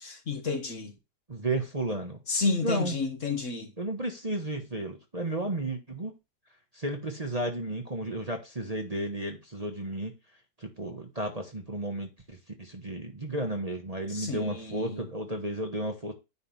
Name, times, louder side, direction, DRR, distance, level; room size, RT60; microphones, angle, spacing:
voice 1, 0.0-0.9 2.3-3.7 14.1-15.1, left 4 dB, 50° left, 1.4 m, -31 dB
voice 2, 1.3-2.2 2.6-3.0 3.8-6.1 6.7-10.1 10.6-16.1, right 1 dB, 25° right, 1.1 m, -33 dB
9.7 x 3.3 x 5.7 m
omnidirectional pair, 1.8 m